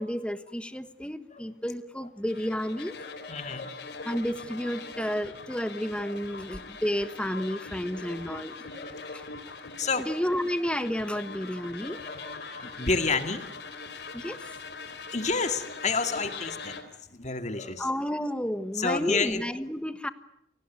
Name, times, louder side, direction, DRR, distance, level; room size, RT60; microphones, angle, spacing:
voice 1, 0.0-2.9 4.0-8.5 9.1-9.2 10.0-12.0 14.1-14.4 17.8-20.1, equal, 5° left, 12 dB, 1.3 m, -31 dB
sound 1, 2.3-16.8, left 4 dB, 70° left, 3.3 m, -42 dB
voice 2, 3.0-3.8 6.3-6.5 7.4-7.5 8.7-9.2 9.8-10.1 11.8-13.5 15.1-16.7 17.1-17.9 18.8-19.4, left 4 dB, 40° left, 9 dB, 2.1 m, -30 dB
29.5 x 18.5 x 9.4 m, 0.76 s
head